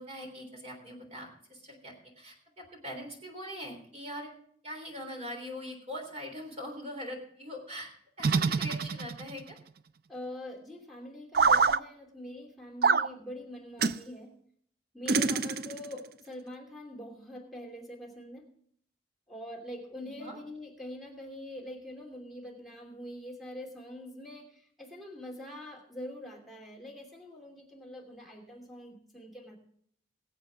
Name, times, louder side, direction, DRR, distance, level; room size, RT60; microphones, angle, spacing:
voice 1, 0.0-4.3 4.6-7.9 8.2-9.6 20.0-20.4, equal, 35° right, 2 dB, 3.4 m, -42 dB
sound 1, 8.2-9.4 11.3-11.8 12.8-13.1 13.8-14.0 15.1-15.9, right 5 dB, 50° right, 0.4 m, -25 dB
voice 2, 10.1-14.3 14.9-18.5 19.3-29.6, left 1 dB, ahead, 0 dB, 2.8 m, -44 dB
22.0 x 8.0 x 3.5 m, 0.64 s
head